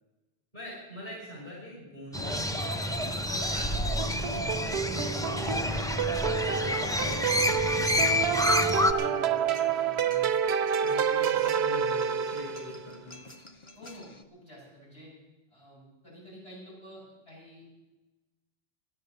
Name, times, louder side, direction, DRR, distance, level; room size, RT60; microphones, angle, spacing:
voice 1, 0.5-10.3 10.8-13.2, left 1 dB, 50° left, -4 dB, 5.9 m, -44 dB
Crow, 2.1-8.9, left 1 dB, 5° left, 0.5 m, -28 dB
sound 1, 3.3-14.2, right 1 dB, 30° left, 0.9 m, -43 dB
sound 2, 4.0-12.9, right 8 dB, 90° right, 0.9 m, -29 dB
voice 2, 13.8-15.1 15.5-17.8, equal, 75° left, -5 dB, 7.2 m, -49 dB
15.0 x 11.0 x 6.7 m, 1.1 s
omnidirectional pair, 1.0 m